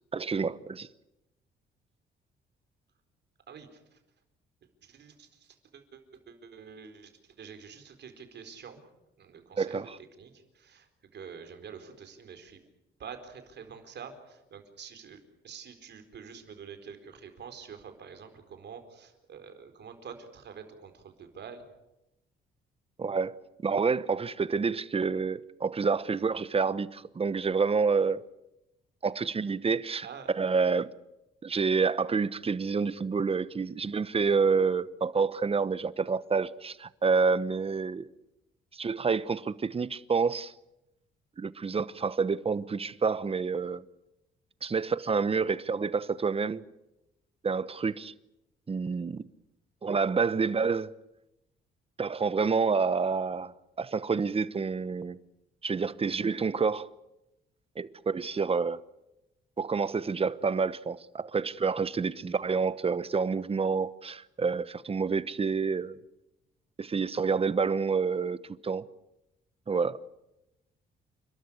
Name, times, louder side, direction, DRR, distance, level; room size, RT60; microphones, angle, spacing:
voice 1, 0.1-0.9 9.6-10.0 23.0-23.4 23.6-28.2 29.0-30.1 30.3-30.9 31.4-38.1 38.7-40.5 41.4-43.8 44.6-46.6 47.4-48.1 48.7-49.3 49.8-50.9 52.0-53.5 53.8-55.2 55.6-56.9 57.8-58.8 59.6-66.0 66.8-68.9 69.7-70.0, right 5 dB, 30° right, 1.0 m, -28 dB
voice 2, 3.5-4.0 4.8-7.1 7.4-8.9 9.2-12.6 13.0-15.2 15.4-21.7 30.0-30.3, right 6 dB, 60° right, 4.4 m, -47 dB
29.5 x 13.0 x 10.0 m
cardioid pair, 90°, 20 cm